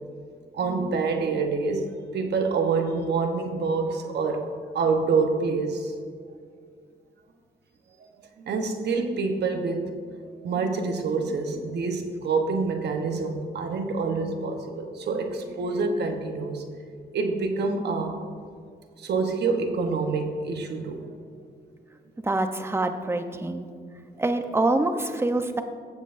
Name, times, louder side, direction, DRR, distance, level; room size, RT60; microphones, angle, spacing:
voice 1, 0.5-1.9 2.1-4.5 4.7-5.9 8.4-9.9 10.4-16.7 17.1-18.2 19.0-21.1, right 4 dB, 85° right, 4 dB, 1.0 m, -26 dB
voice 2, 22.2-23.7 24.2-25.6, right 2 dB, 15° right, 7 dB, 0.6 m, -25 dB
15.0 x 7.5 x 2.6 m, 2.1 s
cardioid pair, 100°, 17 cm